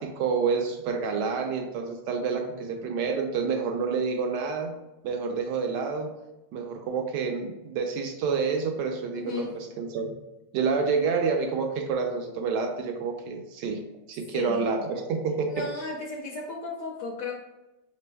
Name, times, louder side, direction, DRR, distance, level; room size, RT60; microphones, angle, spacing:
voice 1, 0.0-4.7 5.0-6.1 6.5-10.1 10.5-13.8 14.1-15.6, right 5 dB, 80° right, 3 dB, 1.2 m, -28 dB
voice 2, 9.1-9.5 14.3-14.7 15.5-17.3, left 3 dB, 65° left, 1 dB, 0.8 m, -34 dB
5.2 x 3.3 x 2.2 m, 0.97 s
omnidirectional pair, 1.8 m